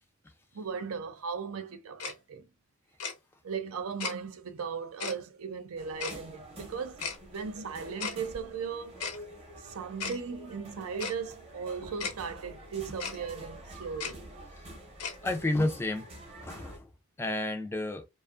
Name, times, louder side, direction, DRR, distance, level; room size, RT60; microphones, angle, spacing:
voice 1, 0.5-2.4 3.4-7.0 7.3-9.0 9.6-14.2, right 6 dB, 70° right, 0.5 m, -37 dB
Tick-tock, 2.0-2.1 3.0-3.1 4.0-4.1 5.0-5.1 6.0-6.2 7.0-7.2 8.0-8.2 9.0-9.2 10.0-10.2 11.0-11.1 12.0-12.1 13.0-13.2 14.0-14.1 15.0-15.2, left 5 dB, 85° left, 0.8 m, -35 dB
sound 1, 5.8-16.8, right 1 dB, 25° right, 0.8 m, -48 dB
voice 2, 15.2-16.1 16.4-16.9 17.2-18.1, left 2 dB, 10° left, 0.3 m, -30 dB
2.4 x 2.3 x 2.4 m
head